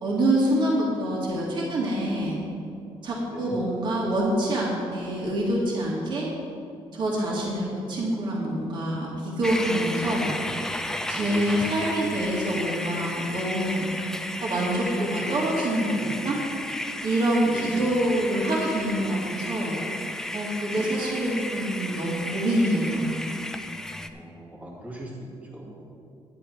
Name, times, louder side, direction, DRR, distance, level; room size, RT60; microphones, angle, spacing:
voice 1, 0.0-2.4 3.0-6.3 6.9-10.3 11.1-13.9 14.4-16.0 16.2-16.4 17.0-19.8 20.3-23.1, right 1 dB, 50° right, -4 dB, 2.3 m, -26 dB
sound 1, 9.4-24.1, left 1 dB, 5° left, 0.4 m, -33 dB
voice 2, 11.2-11.7 17.4-17.9 20.8-21.1 24.1-25.8, right 1 dB, 15° right, -4 dB, 2.0 m, -38 dB
10.5 x 10.5 x 4.6 m, 2.5 s
cardioid pair, 165°, 10 cm